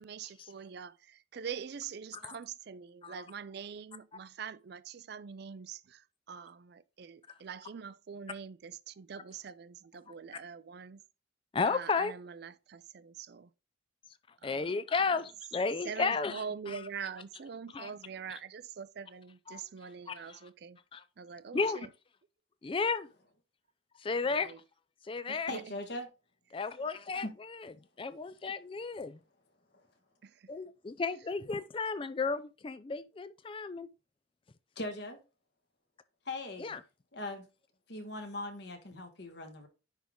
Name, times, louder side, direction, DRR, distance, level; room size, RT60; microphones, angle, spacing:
voice 1, 0.0-11.0 11.7-13.5 14.4-14.8 15.8-20.8 21.2-21.9 24.3-24.6 25.3-25.6 30.2-30.5, right 6 dB, 55° right, 0.4 m, -44 dB
voice 2, 11.5-12.1 14.4-16.8 17.7-17.9 19.5-19.6 20.1-20.4 20.9-21.0 21.5-21.8 22.6-23.1 24.0-24.5 25.0-25.5 26.5-29.2 30.5-33.9 36.6-36.8, left 4 dB, 25° left, 0.3 m, -33 dB
voice 3, 25.5-26.1 27.2-27.3 34.8-35.2 36.2-36.7 37.1-37.4 37.9-39.7, left 2 dB, 60° left, 1.5 m, -39 dB
10.0 x 3.6 x 3.7 m
head